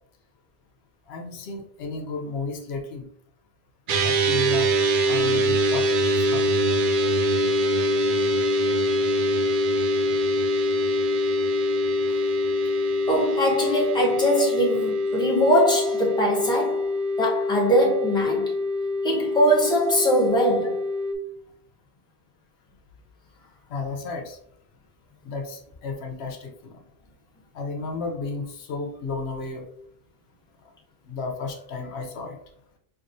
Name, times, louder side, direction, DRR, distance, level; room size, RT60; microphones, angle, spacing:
voice 1, 1.1-3.1 4.0-4.7 5.0-5.9 6.2-6.5 12.1-12.2 23.7-24.4 25.2-26.8 27.5-29.7 31.1-32.4, left 4 dB, 85° left, 0.9 m, -33 dB
sound 1, 3.9-21.1, left 1 dB, 60° right, 0.6 m, -24 dB
voice 2, 13.1-16.9 17.2-18.5 19.0-20.8, equal, 5° left, 0.8 m, -22 dB
4.7 x 2.3 x 2.5 m
omnidirectional pair, 1.1 m